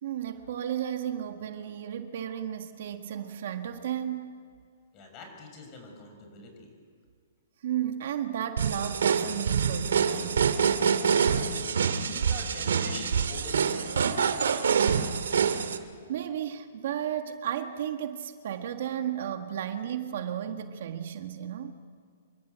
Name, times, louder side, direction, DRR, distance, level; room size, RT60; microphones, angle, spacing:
voice 1, 0.0-4.3 7.6-10.6 16.1-21.7, right 10 dB, 50° right, 6 dB, 1.6 m, -33 dB
voice 2, 4.9-6.7 11.5-15.0, left 3 dB, 20° left, 3 dB, 6.4 m, -46 dB
sound 1, 8.6-15.8, right 6 dB, 85° right, 2.4 m, -26 dB
28.5 x 24.5 x 8.2 m, 2.2 s
hypercardioid pair, 175°, 0 cm